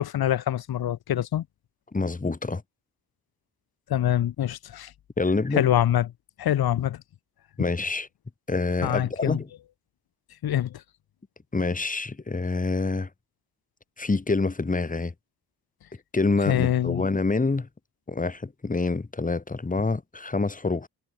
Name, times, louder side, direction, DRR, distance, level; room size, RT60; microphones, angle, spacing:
voice 1, 0.0-1.4 3.9-4.9 5.5-6.1 6.4-7.0 8.8-9.4 10.4-10.8 16.5-17.0, left 11 dB, 75° left, 1.7 m, -24 dB
voice 2, 1.9-2.6 5.2-5.7 7.6-8.1 8.5-9.5 11.5-13.1 14.0-15.1 16.1-17.7 18.1-20.9, left 3 dB, 20° left, 5.0 m, -26 dB
wide cardioid pair, 130°, 37 cm